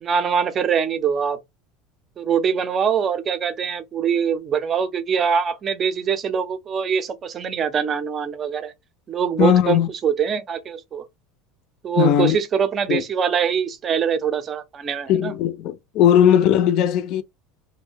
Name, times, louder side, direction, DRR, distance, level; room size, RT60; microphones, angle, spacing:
voice 1, 0.0-1.4 2.2-8.7 9.1-11.0 11.8-15.3, right 7 dB, 30° right, 0.5 m, -23 dB
voice 2, 9.4-9.9 12.0-12.4 12.9-13.0 15.1-17.2, left 10 dB, 55° left, 0.4 m, -18 dB
2.6 x 2.1 x 3.3 m
supercardioid pair, 130°, 0 cm